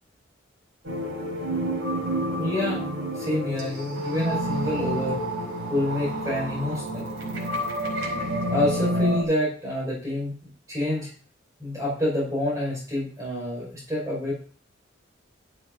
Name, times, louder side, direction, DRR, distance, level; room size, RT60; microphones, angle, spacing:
sound 1, 0.8-9.2, right 1 dB, 90° right, 4.9 m, -29 dB
voice 1, 2.4-2.9 3.1-5.2 5.7-7.1 8.5-11.1 11.6-14.3, left 1 dB, 15° right, -4 dB, 5.7 m, -27 dB
12.0 x 9.1 x 4.0 m, 0.42 s
head